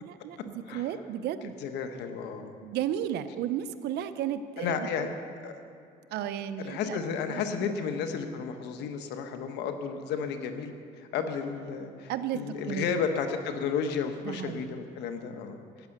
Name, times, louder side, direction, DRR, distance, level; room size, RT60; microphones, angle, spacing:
voice 1, 0.0-1.6 2.6-4.9 6.1-7.7 12.1-12.9 14.2-14.8, right 10 dB, 75° right, 11 dB, 0.7 m, -34 dB
voice 2, 1.6-2.5 4.6-5.1 5.4-5.6 6.6-10.7 11.0-15.9, left 6 dB, 85° left, 7 dB, 1.2 m, -33 dB
13.5 x 9.7 x 6.6 m, 2.4 s
cardioid pair, 110°, 17 cm